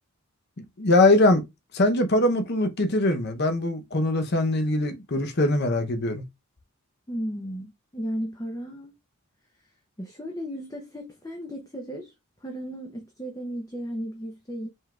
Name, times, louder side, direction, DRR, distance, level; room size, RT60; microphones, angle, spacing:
voice 1, 0.8-1.4 1.7-6.2, left 2 dB, 50° left, 0.8 m, -22 dB
voice 2, 7.1-8.9 9.5-12.1 12.4-14.7, equal, 15° left, 0.7 m, -35 dB
5.2 x 3.7 x 2.4 m
head